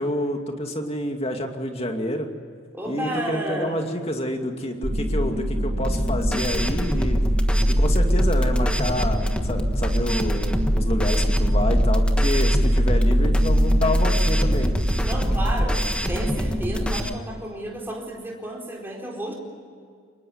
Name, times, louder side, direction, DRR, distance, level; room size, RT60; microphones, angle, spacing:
voice 1, 0.0-2.3 2.8-7.2 7.8-14.7, left 1 dB, 30° left, 4 dB, 2.5 m, -28 dB
voice 2, 2.7-3.9 15.0-19.3, right 1 dB, 10° right, -1 dB, 4.4 m, -32 dB
sound 1, 4.8-17.0, equal, 70° right, 6.0 m, -22 dB
sound 2, 5.8-17.1, equal, 5° left, 1.4 m, -28 dB
25.0 x 21.0 x 9.6 m, 2.2 s
head